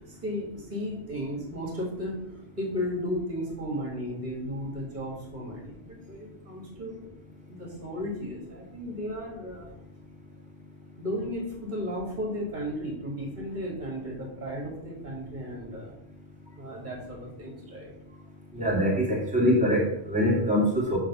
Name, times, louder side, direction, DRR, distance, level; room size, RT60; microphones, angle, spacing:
voice 1, 0.1-2.2 2.6-7.0 7.4-9.7 11.0-15.9 16.6-17.9, equal, 40° right, -1 dB, 1.9 m, -34 dB
voice 2, 18.5-21.0, equal, 5° right, -5 dB, 2.1 m, -24 dB
6.6 x 3.4 x 5.3 m, 0.75 s
omnidirectional pair, 1.2 m